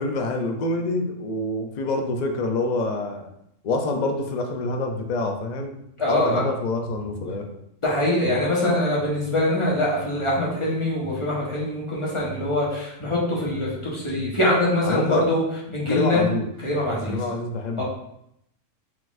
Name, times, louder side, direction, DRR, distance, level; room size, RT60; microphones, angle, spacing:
voice 1, 0.0-3.3 3.6-5.8 6.1-7.4 14.8-15.2 15.9-16.5 17.1-17.8, left 2 dB, 55° left, 3 dB, 0.5 m, -26 dB
voice 2, 6.0-6.4 7.8-15.4 15.7-16.2 16.6-17.2 17.8-17.9, left 1 dB, 25° left, -6 dB, 1.1 m, -23 dB
4.2 x 3.9 x 2.5 m, 0.78 s
omnidirectional pair, 1.3 m